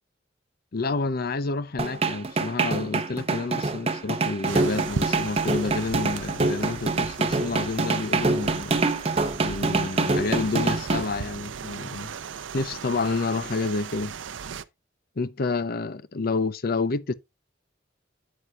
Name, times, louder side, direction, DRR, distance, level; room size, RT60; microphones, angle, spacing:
voice 1, 0.7-8.8 9.4-12.1 12.5-14.1 15.2-17.1, left 3 dB, 50° left, 0.6 m, -29 dB
sound 1, 1.8-11.0, right 3 dB, 30° right, 0.8 m, -25 dB
sound 2, 4.4-14.6, right 6 dB, 75° right, 0.6 m, -37 dB
8.8 x 8.5 x 2.4 m
head